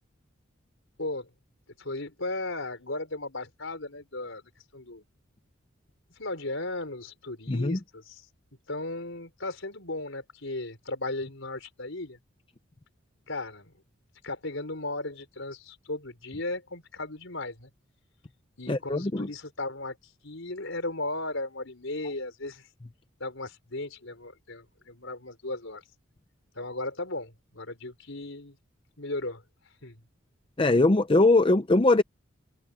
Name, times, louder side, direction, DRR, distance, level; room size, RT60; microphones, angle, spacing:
voice 1, 1.0-1.3 1.8-5.0 6.2-8.2 8.7-12.2 13.3-13.7 14.2-17.7 18.6-20.0 20.2-22.7 23.2-25.8 26.6-28.6 29.0-29.4 29.8-30.0, left 2 dB, 70° left, 4.3 m, -36 dB
voice 2, 7.5-7.8 18.7-19.3 30.6-32.0, left 2 dB, 25° left, 0.5 m, -21 dB
head